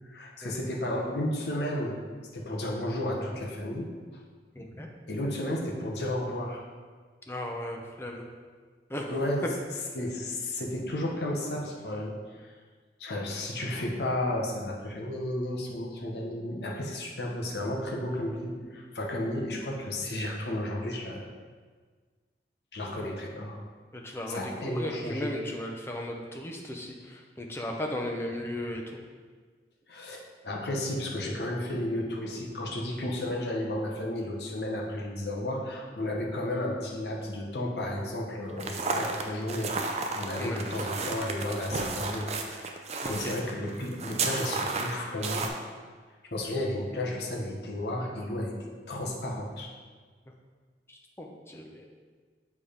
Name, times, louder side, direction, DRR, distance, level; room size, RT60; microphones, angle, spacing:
voice 1, 0.1-2.0 2.3-3.9 5.1-6.7 9.1-9.4 9.9-12.5 13.0-21.3 22.7-23.6 24.3-25.4 29.9-39.7 40.1-42.7 43.1-45.5 46.3-49.7, left 1 dB, 70° left, -1 dB, 1.0 m, -33 dB
voice 2, 4.5-4.9 7.3-8.3 8.9-9.1 23.9-29.0 40.4-40.6 43.0-43.3 50.3-50.4 50.9-51.9, left 1 dB, 15° left, 1 dB, 0.6 m, -36 dB
sound 1, 38.6-45.5, right 3 dB, 40° right, 0.5 m, -32 dB
6.6 x 3.6 x 5.1 m, 1.5 s
head